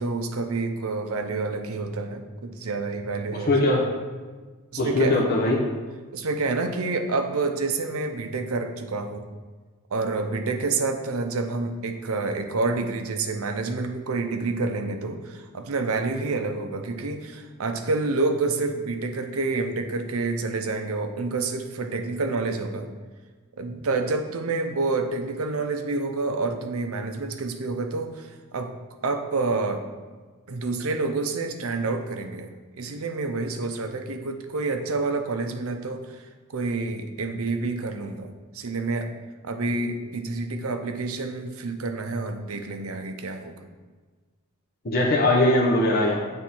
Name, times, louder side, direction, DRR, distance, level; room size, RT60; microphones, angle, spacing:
voice 1, 0.0-3.5 4.7-5.2 6.1-9.2 9.9-22.9 23.6-28.8 29.0-29.8 30.5-32.5 32.8-36.2 36.5-39.1 39.4-43.6, right 3 dB, 65° right, 6 dB, 0.6 m, -28 dB
voice 2, 3.3-3.9 4.8-5.6 44.8-46.2, left 1 dB, 45° left, -3 dB, 0.7 m, -21 dB
7.8 x 3.5 x 4.3 m, 1.4 s
head